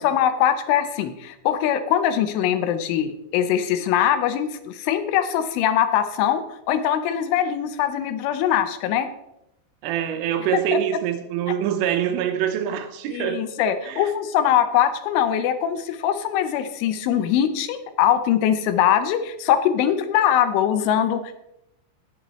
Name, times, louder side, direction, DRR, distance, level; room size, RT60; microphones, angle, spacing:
voice 1, 0.0-9.1 10.7-10.8 13.1-21.4, left 10 dB, 80° left, 3.2 m, -22 dB
voice 2, 9.8-13.4 13.8-14.1, right 10 dB, 90° right, 3.6 m, -25 dB
18.0 x 7.7 x 3.1 m
omnidirectional pair, 5.6 m